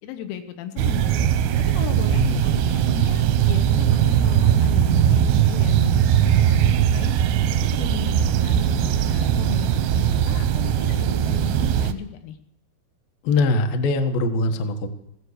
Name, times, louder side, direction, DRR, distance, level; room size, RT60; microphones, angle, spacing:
voice 1, 0.0-1.3 1.7-7.1 7.6-12.4, left 9 dB, 90° left, 7 dB, 3.9 m, -36 dB
sound 1, 0.8-11.9, right 9 dB, 80° right, 2.5 m, -20 dB
voice 2, 2.1-2.4 13.2-14.9, left 3 dB, 70° left, 6 dB, 2.2 m, -22 dB
15.5 x 12.5 x 6.5 m, 0.80 s
omnidirectional pair, 6.0 m